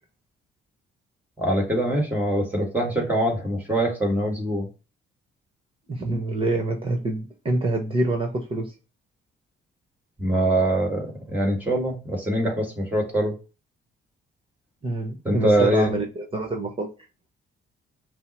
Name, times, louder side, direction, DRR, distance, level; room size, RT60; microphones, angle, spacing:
voice 1, 1.4-4.7 10.2-13.4 15.3-15.9, right 1 dB, 10° right, 1.8 m, -23 dB
voice 2, 5.9-8.7 14.8-16.9, right 2 dB, 25° right, 1.1 m, -26 dB
5.5 x 2.1 x 4.3 m
cardioid pair, 90°, 20 cm